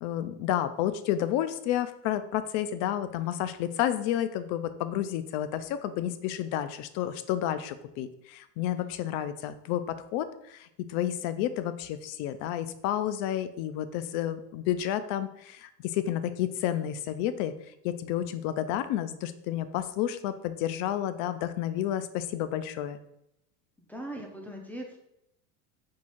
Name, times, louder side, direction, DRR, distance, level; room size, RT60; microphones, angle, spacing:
voice 1, 0.0-17.5 17.8-23.0, left 11 dB, 55° left, 12 dB, 0.5 m, -31 dB
voice 2, 23.8-25.0, right 1 dB, 5° left, 1 dB, 0.5 m, -40 dB
4.7 x 2.3 x 4.2 m, 0.81 s
supercardioid pair, 140°, 34 cm